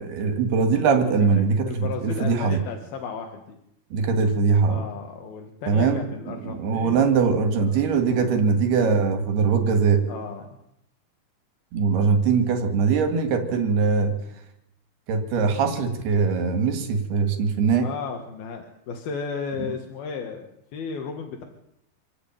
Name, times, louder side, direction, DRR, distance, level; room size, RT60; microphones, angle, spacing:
voice 1, 0.0-2.6 3.9-4.8 5.7-10.0 11.7-14.1 15.1-17.9, right 5 dB, 85° right, 6 dB, 4.5 m, -22 dB
voice 2, 1.2-3.6 4.7-7.8 8.1-8.4 10.1-10.5 17.7-21.4, left 5 dB, 75° left, 3 dB, 3.8 m, -35 dB
27.0 x 14.0 x 9.4 m, 0.81 s
omnidirectional pair, 4.4 m